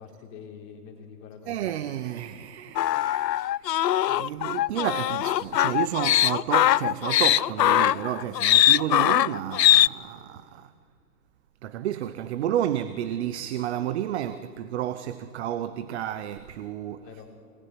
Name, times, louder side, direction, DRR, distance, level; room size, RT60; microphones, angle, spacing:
voice 1, 0.0-1.7 10.2-10.4 17.0-17.3, left 6 dB, 30° left, 3.7 m, -45 dB
voice 2, 1.5-3.6 4.1-10.7 11.6-17.1, right 11 dB, 40° right, 1.0 m, -31 dB
sound 1, 2.8-9.9, left 13 dB, 80° left, 0.6 m, -21 dB
26.0 x 20.0 x 9.9 m
hypercardioid pair, 145°, 49 cm